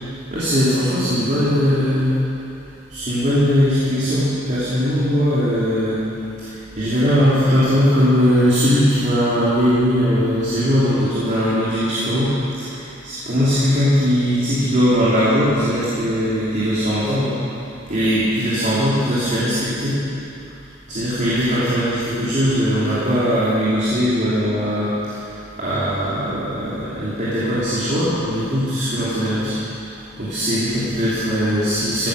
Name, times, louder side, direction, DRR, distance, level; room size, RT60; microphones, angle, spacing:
voice 1, 0.3-2.1 2.9-6.1 6.4-12.3 12.6-17.4 17.9-20.0 20.9-29.5 30.2-32.1, equal, 40° right, -11 dB, 3.3 m, -19 dB
16.0 x 10.5 x 6.7 m, 2.7 s
head